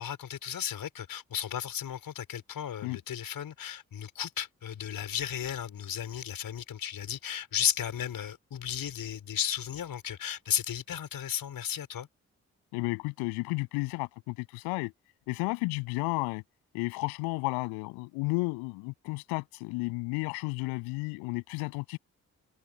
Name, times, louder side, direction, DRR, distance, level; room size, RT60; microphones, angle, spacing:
voice 1, 0.0-12.1, left 9 dB, 65° left, 5.1 m, -34 dB
voice 2, 12.7-14.9 15.3-16.4 16.7-22.0, left 27 dB, 85° left, 7.9 m, -32 dB
hypercardioid pair, 40°, 37 cm